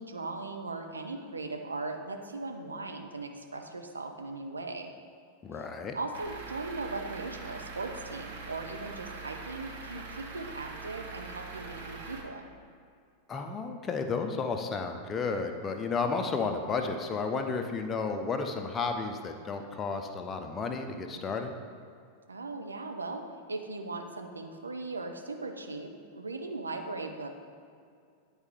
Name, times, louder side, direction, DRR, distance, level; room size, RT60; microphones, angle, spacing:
voice 1, 0.0-4.9 5.5-5.6 5.9-12.5 22.3-23.2 23.5-27.3, right 3 dB, 75° right, 4 dB, 0.6 m, -38 dB
voice 2, 5.4-6.0 13.3-21.5, left 4 dB, 20° left, 5 dB, 0.6 m, -32 dB
Truck / Idling, 6.1-12.2, right 4 dB, 55° right, 1.0 m, -43 dB
9.7 x 4.4 x 3.5 m, 2.3 s
figure-of-eight pair, 90°, 0 cm